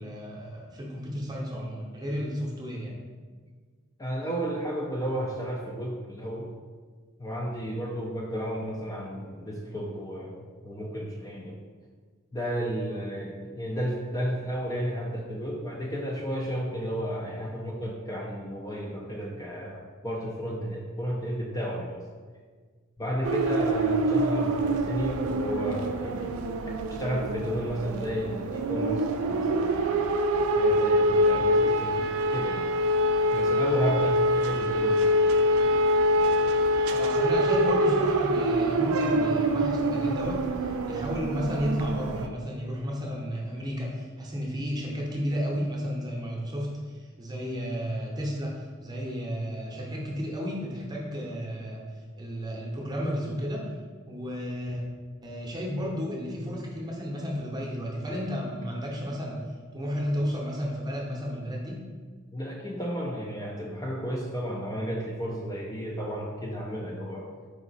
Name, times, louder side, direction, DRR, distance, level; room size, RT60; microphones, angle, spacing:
voice 1, 0.0-3.0 36.9-51.8 52.2-53.7 54.1-54.8 55.2-59.4 59.7-61.9, equal, 20° right, -3 dB, 0.8 m, -33 dB
voice 2, 4.0-6.5 7.2-11.6 12.3-22.0 23.0-26.3 26.7-30.1 30.5-32.0 32.3-32.7 33.3-35.1 62.3-67.3, equal, 15° left, -3 dB, 0.4 m, -32 dB
sound 1, 23.2-42.3, equal, 75° right, 0.3 m, -25 dB
4.9 x 2.7 x 4.0 m, 1.5 s
head